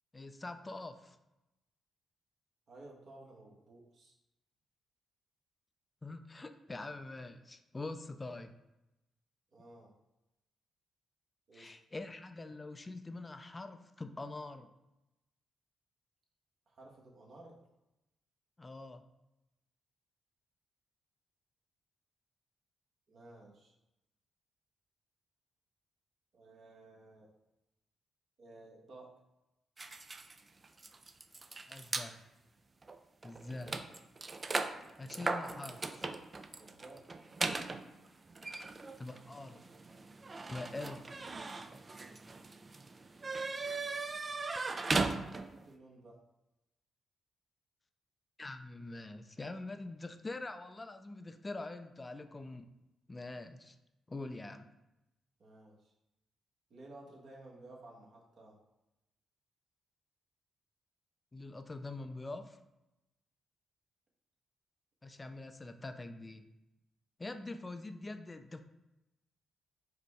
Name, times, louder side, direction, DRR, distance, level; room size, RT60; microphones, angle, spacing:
voice 1, 0.1-1.2 6.0-8.5 11.5-14.7 18.6-19.0 31.7-32.3 33.2-33.8 35.0-36.1 39.0-39.6 40.5-41.0 48.4-52.7 53.1-53.8 54.1-54.7 61.3-62.6 65.0-66.5 67.2-68.6, left 2 dB, 25° left, 8 dB, 0.4 m, -44 dB
voice 2, 2.7-4.1 9.5-9.9 11.5-11.7 16.7-17.6 23.1-23.7 26.3-27.3 28.4-29.1 36.6-37.0 45.2-46.2 55.4-55.9 56.7-58.6, right 2 dB, 60° right, -2 dB, 1.3 m, -55 dB
sound 1, 29.8-32.1 32.8-33.0 33.2-45.7, right 3 dB, 35° right, 0.4 m, -39 dB
4.9 x 2.2 x 4.7 m, 0.93 s
supercardioid pair, 60°, 0 cm